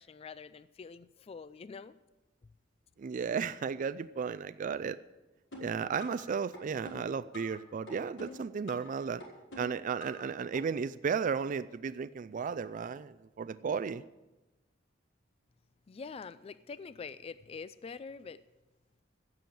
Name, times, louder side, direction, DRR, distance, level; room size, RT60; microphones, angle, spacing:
voice 1, 0.0-2.0 15.9-18.4, left 5 dB, 30° left, 15 dB, 0.3 m, -45 dB
voice 2, 3.0-5.0 5.6-9.2 9.6-14.0, right 6 dB, 45° right, 13 dB, 0.3 m, -34 dB
sound 1, 5.5-6.2 6.5-7.6 7.9-8.9 9.2-10.2 10.5-10.6, left 1 dB, 85° left, 5.2 m, -46 dB
16.0 x 7.0 x 7.5 m, 1.1 s
head